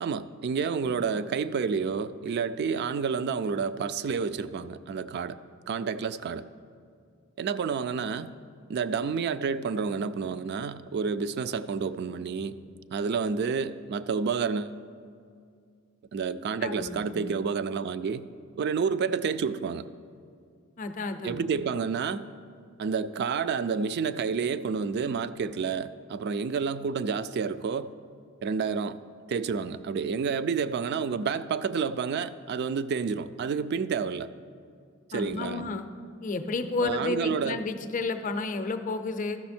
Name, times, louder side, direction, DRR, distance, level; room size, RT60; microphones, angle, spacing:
voice 1, 0.0-5.4 5.7-6.5 7.4-8.3 8.7-12.6 12.9-14.8 16.1-18.3 18.6-19.9 21.2-22.2 22.8-27.9 28.4-29.0 29.3-34.3 35.1-35.7 36.8-37.6, right 5 dB, 55° right, 14 dB, 0.3 m, -29 dB
voice 2, 16.6-17.1 20.8-21.4 35.1-35.9 36.2-39.4, left 3 dB, 40° left, 8 dB, 0.5 m, -31 dB
13.5 x 6.2 x 4.3 m, 2.3 s
head